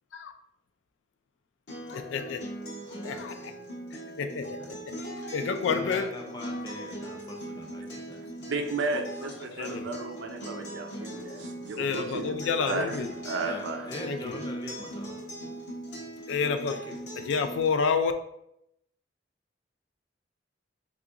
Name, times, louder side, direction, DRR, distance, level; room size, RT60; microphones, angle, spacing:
Acoustic guitar, 1.7-17.7, right 1 dB, 65° left, 0.9 m, -40 dB
voice 1, 1.9-2.4 2.9-3.5 3.9-4.7 5.3-6.1 6.5-6.9 9.5-9.9 11.8-13.1 14.0-14.4 16.3-16.8 17.3-18.1, left 5 dB, 85° left, 8 dB, 0.3 m, -29 dB
voice 2, 5.7-8.2 13.4-15.6 16.6-17.0, left 2 dB, 20° left, 1 dB, 0.5 m, -42 dB
voice 3, 8.5-12.3 12.6-13.0 13.2-13.9, right 3 dB, 80° right, 3 dB, 0.5 m, -33 dB
2.9 x 2.5 x 3.6 m, 0.79 s
head